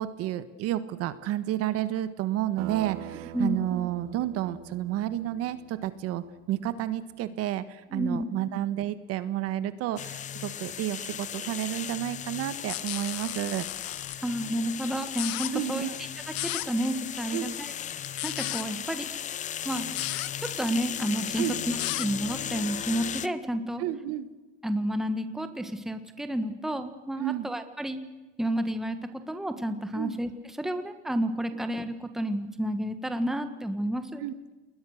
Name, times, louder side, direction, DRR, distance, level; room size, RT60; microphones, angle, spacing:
voice 1, 0.0-13.7 15.5-15.9 17.3-17.6 21.4-21.5 23.8-24.3 27.2-27.5 29.9-30.2 34.2-34.3, right 13 dB, 40° right, 13 dB, 1.5 m, -31 dB
sound 1, 2.6-6.9, right 15 dB, 70° right, 1.8 m, -44 dB
voice 2, 7.9-8.2 14.2-15.8 16.3-19.1 19.6-19.9 20.4-23.8 24.6-28.0 28.4-34.2, right 1 dB, ahead, 8 dB, 1.5 m, -31 dB
sound 2, 10.0-23.3, left 10 dB, 20° left, 0.7 m, -36 dB
sound 3, 12.7-14.1 15.0-15.5 16.3-16.7 17.9-18.6 19.8-20.3 21.4-22.1, left 19 dB, 50° left, 1.3 m, -34 dB
30.0 x 21.0 x 6.6 m, 1.2 s
supercardioid pair, 145°, 36 cm